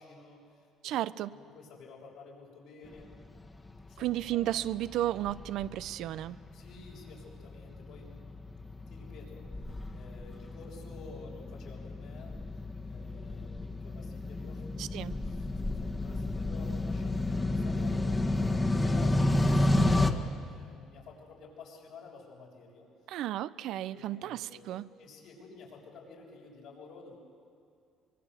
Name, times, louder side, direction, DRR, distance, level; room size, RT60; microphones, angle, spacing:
voice 1, 0.0-0.9 1.3-3.1 3.9-4.1 4.3-4.5 6.5-8.1 8.9-9.5 9.9-12.4 12.8-14.7 14.9-18.1 18.4-22.9 23.9-27.2, left 4 dB, 75° left, -2 dB, 6.7 m, -51 dB
voice 2, 0.8-1.3 4.0-6.4 14.8-15.1 23.1-24.9, right 13 dB, 70° right, 16 dB, 0.6 m, -33 dB
sound 1, 3.1-20.1, left 2 dB, 20° left, 1.5 m, -31 dB
24.5 x 22.0 x 7.9 m, 2.4 s
supercardioid pair, 90°, 0 cm